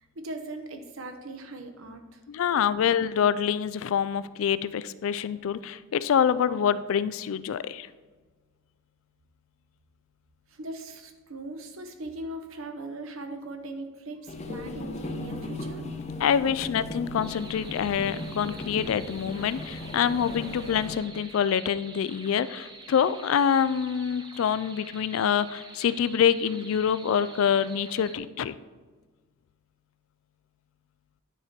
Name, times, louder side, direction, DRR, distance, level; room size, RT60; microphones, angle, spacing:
voice 1, 0.2-2.2 10.5-15.9, right 2 dB, 70° right, 6 dB, 0.9 m, -39 dB
voice 2, 2.3-7.9 16.2-28.5, left 8 dB, 70° left, 16 dB, 0.3 m, -26 dB
sound 1, 14.3-21.0, left 2 dB, 30° left, 0.6 m, -37 dB
sound 2, 17.2-28.2, right 3 dB, 20° right, 0.7 m, -47 dB
10.0 x 4.5 x 4.2 m, 1.3 s
head